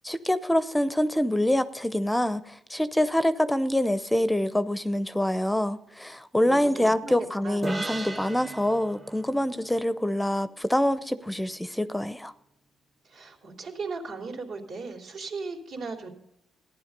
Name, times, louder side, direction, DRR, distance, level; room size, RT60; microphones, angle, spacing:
voice 1, 0.0-12.3, left 1 dB, 5° left, 0.6 m, -25 dB
voice 2, 6.4-7.2 7.4-7.6 13.1-16.1, right 4 dB, 70° right, 3.1 m, -37 dB
sound 1, 7.6-11.1, right 2 dB, 25° right, 1.1 m, -38 dB
15.0 x 10.5 x 5.2 m
cardioid pair, 90°, 0 cm